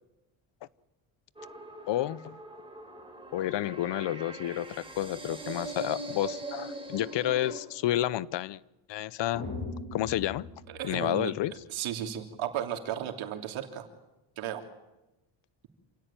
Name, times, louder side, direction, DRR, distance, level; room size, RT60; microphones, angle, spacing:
sound 1, 1.4-7.6, right 2 dB, 10° right, 5.1 m, -41 dB
voice 1, 1.9-2.4 3.3-8.6 8.9-9.5 9.9-10.5 10.8-11.5, left 13 dB, 60° left, 0.8 m, -30 dB
sound 2, 9.3-11.6, left 3 dB, 35° left, 7.7 m, -40 dB
voice 2, 10.7-11.3 11.7-13.9 14.4-14.6, right 10 dB, 75° right, 3.2 m, -34 dB
27.0 x 17.0 x 9.0 m
cardioid pair, 105°, 48 cm